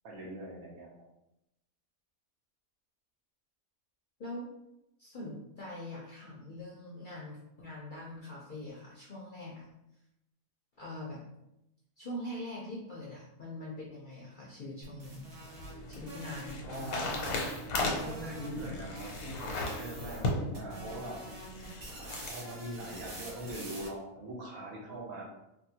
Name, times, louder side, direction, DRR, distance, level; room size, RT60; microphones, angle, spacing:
voice 1, 0.0-0.9 16.6-17.4 17.9-21.2 22.0-25.2, right 1 dB, 85° right, -3 dB, 1.3 m, -42 dB
voice 2, 4.2-4.5 5.0-9.7 10.8-11.2 12.0-15.3 15.9-17.2, left 1 dB, 60° left, -4 dB, 0.5 m, -43 dB
sound 1, 14.8-18.7 18.9-20.3 20.5-23.9, right 1 dB, 55° right, 1.1 m, -47 dB
sound 2, 15.1-22.4, left 2 dB, 90° left, 1.1 m, -37 dB
3.6 x 2.1 x 2.7 m, 0.87 s
omnidirectional pair, 1.4 m